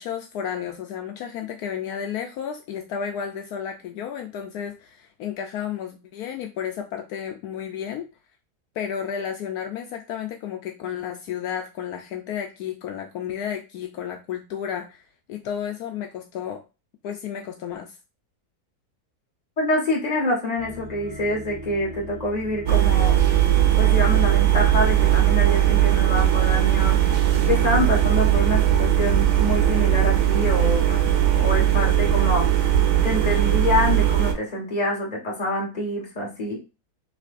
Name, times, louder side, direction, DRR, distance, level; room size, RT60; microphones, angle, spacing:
voice 1, 0.0-8.1 8.7-15.0 15.3-16.6 17.0-18.0, left 8 dB, 75° left, 4 dB, 1.1 m, -32 dB
voice 2, 19.6-23.1 23.8-31.0 31.4-32.7 33.0-36.6, left 1 dB, 25° left, -2 dB, 1.5 m, -26 dB
sound 1, 20.6-30.1, equal, 25° right, 0.6 m, -37 dB
sound 2, 22.7-34.3, right 12 dB, 80° right, 1.5 m, -19 dB
5.8 x 3.1 x 2.5 m, 0.30 s
omnidirectional pair, 1.7 m